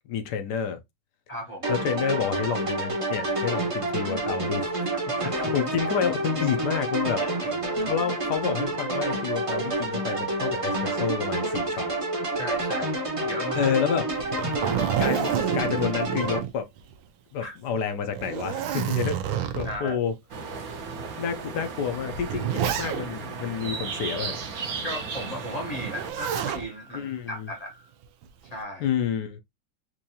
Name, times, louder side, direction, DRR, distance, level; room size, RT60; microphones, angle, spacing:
voice 1, 0.1-0.8 1.7-4.7 5.2-7.2 7.8-11.9 13.5-14.1 15.0-16.7 17.3-19.2 19.5-20.1 21.2-24.4 26.9-27.5 28.8-29.4, left 8 dB, 70° left, 1.2 m, -29 dB
voice 2, 1.3-1.7 5.2-5.3 7.2-7.6 12.3-12.9 13.2-13.7 17.4-17.5 19.6-20.0 24.8-27.9 28.4-28.9, equal, 35° left, 0.6 m, -36 dB
sound 1, 1.6-16.4, right 2 dB, 25° right, 0.7 m, -28 dB
Zipper (clothing), 14.1-17.1 17.4-17.5 18.1-19.9 20.7-20.8 21.8-23.3 25.8-26.7 28.0-28.5, right 9 dB, 85° right, 1.4 m, -29 dB
sound 2, 20.3-26.1, right 5 dB, 55° right, 1.1 m, -35 dB
4.6 x 2.5 x 2.7 m
omnidirectional pair, 2.1 m